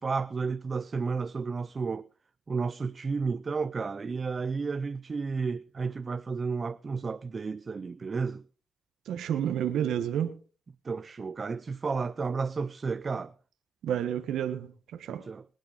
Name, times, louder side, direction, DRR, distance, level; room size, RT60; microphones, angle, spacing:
voice 1, 0.0-2.1 2.5-8.4 10.8-13.3 15.1-15.5, right 4 dB, 40° right, 0.6 m, -32 dB
voice 2, 9.1-10.4 13.8-15.2, right 9 dB, 85° right, 1.3 m, -30 dB
27.0 x 9.1 x 4.1 m
cardioid pair, 85°, 0 cm